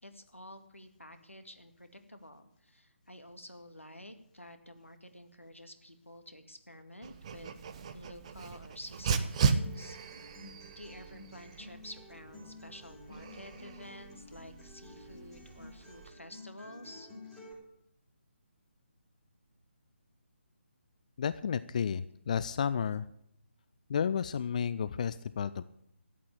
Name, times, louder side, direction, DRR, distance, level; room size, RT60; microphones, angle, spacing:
voice 1, 0.0-7.6 7.9-10.0 10.8-17.1, left 1 dB, 90° left, 8 dB, 2.1 m, -50 dB
Dog, 7.0-16.1, right 5 dB, 30° right, 0.9 m, -37 dB
Acoustic guitar, 9.5-17.5, left 2 dB, 5° left, 5.5 m, -52 dB
voice 2, 21.2-23.1 23.9-25.6, left 7 dB, 35° left, 15 dB, 0.5 m, -32 dB
13.5 x 8.6 x 8.5 m, 0.70 s
figure-of-eight pair, 145°, 7 cm